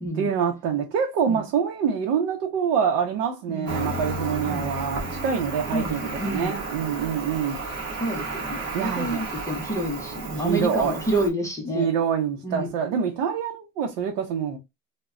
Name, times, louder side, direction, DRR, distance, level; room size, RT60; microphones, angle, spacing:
voice 1, 0.2-7.6 8.7-9.3 10.3-10.9 11.7-14.6, right 7 dB, 75° right, 0.7 m, -26 dB
Cricket, 3.7-11.3, right 2 dB, 35° right, 0.8 m, -33 dB
voice 2, 5.7-6.5 8.0-11.9 12.4-12.7, right 1 dB, 10° left, 0.5 m, -29 dB
2.1 x 2.1 x 3.5 m
cardioid pair, 160°, 43 cm